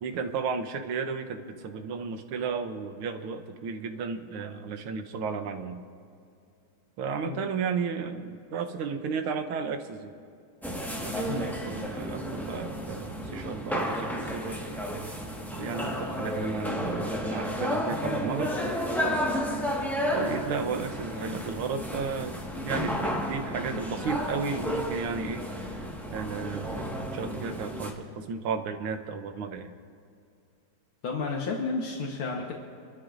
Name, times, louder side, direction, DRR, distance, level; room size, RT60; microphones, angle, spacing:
voice 1, 0.0-5.8 7.0-10.1 11.0-14.6 15.5-18.5 20.1-25.8 26.1-29.7, right 5 dB, 90° right, 7 dB, 1.8 m, -33 dB
sound 1, 10.6-27.9, equal, ahead, 1.2 m, -32 dB
voice 2, 31.0-32.5, left 4 dB, 75° left, -1 dB, 2.1 m, -32 dB
25.5 x 13.0 x 2.6 m, 2.5 s
omnidirectional pair, 2.3 m